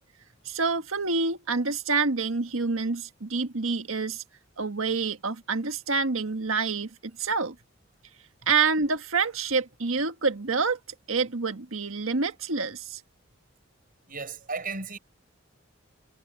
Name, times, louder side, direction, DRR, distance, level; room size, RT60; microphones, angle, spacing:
voice 1, 0.4-4.2 4.6-6.9 7.2-7.5 8.5-10.8 11.1-13.0, right 4 dB, 85° right, 1.5 m, -27 dB
voice 2, 14.1-15.0, right 4 dB, 45° right, 7.6 m, -35 dB
head